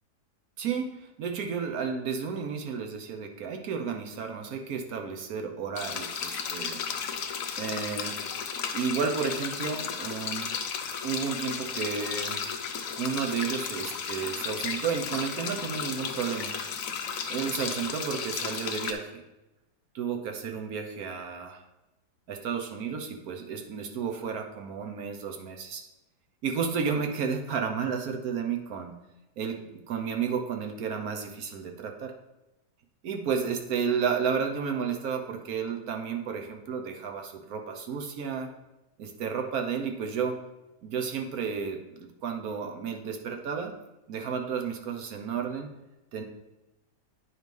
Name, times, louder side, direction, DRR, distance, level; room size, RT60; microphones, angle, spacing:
voice 1, 0.6-6.8 7.6-8.2 8.7-10.5 11.0-12.4 13.0-16.6 17.3-19.2 19.9-21.6 22.3-25.8 26.4-29.0 29.4-32.1 33.0-38.5 39.0-40.4 40.8-43.7 44.1-45.7 46.1-46.2, right 6 dB, 60° right, 4 dB, 1.0 m, -32 dB
sound 1, 5.8-18.9, left 6 dB, 70° left, 0.8 m, -34 dB
9.0 x 3.2 x 5.3 m, 0.97 s
omnidirectional pair, 2.2 m